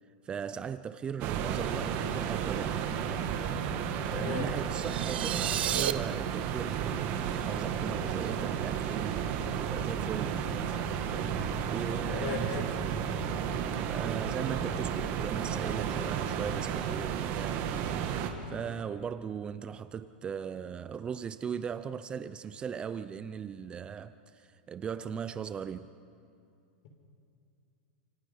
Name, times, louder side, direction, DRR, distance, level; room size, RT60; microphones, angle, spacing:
voice 1, 0.2-2.8 3.8-10.9 11.7-12.5 13.9-17.7 18.3-25.9, right 7 dB, 20° right, 0.5 m, -38 dB
sound 1, 1.2-18.3, right 8 dB, 40° right, 2.1 m, -32 dB
voice 2, 4.1-4.5 12.1-12.6, left 5 dB, 50° left, 5.9 m, -36 dB
sound 2, 4.7-5.9, right 11 dB, 90° right, 1.0 m, -31 dB
29.0 x 28.0 x 5.6 m
supercardioid pair, 150°, 5 cm